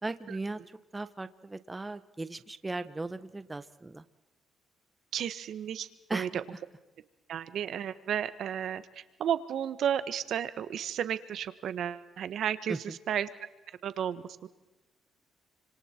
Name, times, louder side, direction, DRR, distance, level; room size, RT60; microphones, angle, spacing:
voice 1, 0.0-4.0 6.1-6.4 12.7-13.0, right 2 dB, 20° right, 12 dB, 1.2 m, -37 dB
voice 2, 5.1-6.4 7.3-13.3 13.8-14.5, right 9 dB, 70° right, 13 dB, 1.3 m, -33 dB
29.5 x 26.0 x 4.5 m, 1.1 s
cardioid pair, 90°, 0 cm